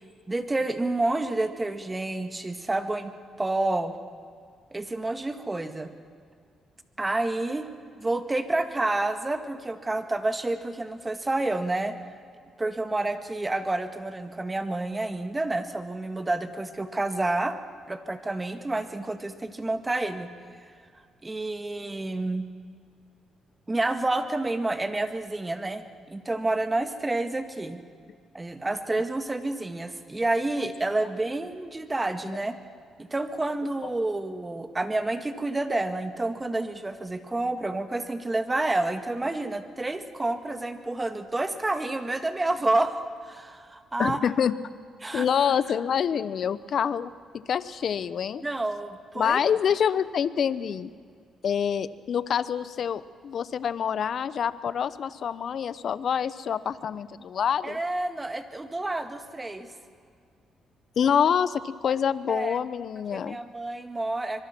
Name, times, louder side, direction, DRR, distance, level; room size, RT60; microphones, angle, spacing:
voice 1, 0.3-3.1 3.4-3.9 4.7-5.9 7.0-7.7 8.0-12.0 12.6-17.6 17.9-20.3 21.2-22.4 23.7-27.8 28.3-32.6 33.0-43.0 43.2-44.2 45.0-45.3 48.4-49.4 57.6-59.7 62.3-62.6 63.1-64.4, right 2 dB, 20° right, 8 dB, 1.9 m, -29 dB
voice 2, 44.0-44.5 45.1-47.1 47.3-48.4 49.2-50.9 51.4-57.8 61.0-63.4, left 8 dB, 60° left, 16 dB, 0.9 m, -26 dB
24.5 x 23.5 x 6.1 m, 2.2 s
cardioid pair, 90°, 0 cm